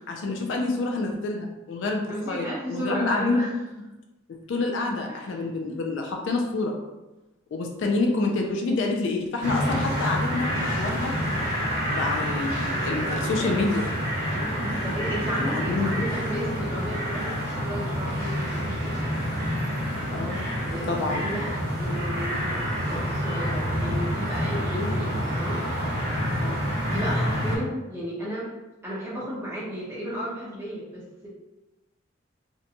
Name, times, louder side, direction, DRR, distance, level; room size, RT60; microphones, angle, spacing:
voice 1, 0.1-3.4 4.3-6.8 7.5-11.2 11.9-13.9 15.3-16.0 20.1-20.5 20.9-21.3 26.4-26.8, left 3 dB, 65° left, 2 dB, 0.3 m, -28 dB
voice 2, 2.1-3.5 5.1-5.3 13.0-13.7 14.3-19.0 20.7-25.6 26.8-28.5 28.8-31.3, equal, 10° right, -8 dB, 0.8 m, -34 dB
sound 1, 9.4-27.6, equal, 50° right, 0.8 m, -28 dB
2.6 x 2.2 x 2.7 m, 1.0 s
head